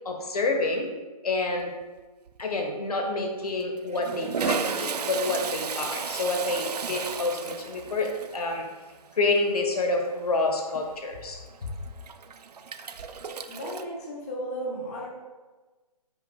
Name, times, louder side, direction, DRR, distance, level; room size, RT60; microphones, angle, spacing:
voice 1, 0.0-0.9 1.2-1.7 2.4-8.6 9.1-11.4, left 2 dB, 70° left, 3 dB, 1.4 m, -28 dB
Toilet flush, 1.6-2.0 2.3-2.4 3.4-13.8, right 6 dB, 75° right, 0.5 m, -34 dB
voice 2, 13.5-15.1, right 1 dB, 25° left, -3 dB, 1.2 m, -34 dB
10.0 x 6.0 x 2.3 m, 1.3 s
hypercardioid pair, 165°, 20 cm